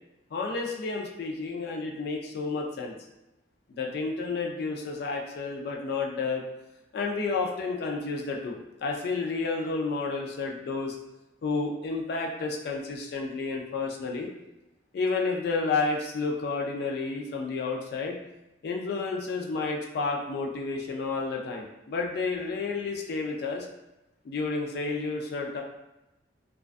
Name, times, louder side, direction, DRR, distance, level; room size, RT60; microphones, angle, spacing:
voice 1, 0.3-2.9 3.7-6.4 6.9-11.0 11.4-14.3 14.9-18.2 18.6-23.7 24.2-25.6, left 4 dB, 60° left, 0 dB, 0.3 m, -31 dB
2.3 x 2.2 x 2.4 m, 0.96 s
head